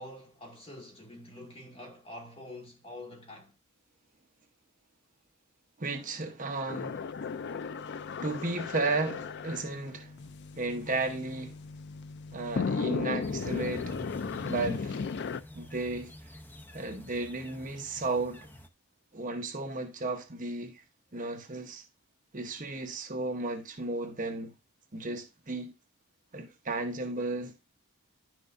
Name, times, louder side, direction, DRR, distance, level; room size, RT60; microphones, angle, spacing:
voice 1, 0.0-3.5, left 1 dB, 25° left, 1.9 m, -46 dB
voice 2, 5.8-7.3 7.8-7.9 8.2-10.2 10.5-11.6 12.3-13.9 14.4-15.0 15.5-16.3 16.7-18.4 19.1-20.8 21.1-21.8 22.3-24.5 24.9-25.7 26.3-27.5, right 3 dB, 35° right, 1.0 m, -34 dB
sound 1, 6.7-15.4, left 5 dB, 50° left, 0.4 m, -36 dB
sound 2, 13.2-18.7, left 1 dB, 10° left, 0.7 m, -46 dB
10.5 x 6.2 x 2.6 m
head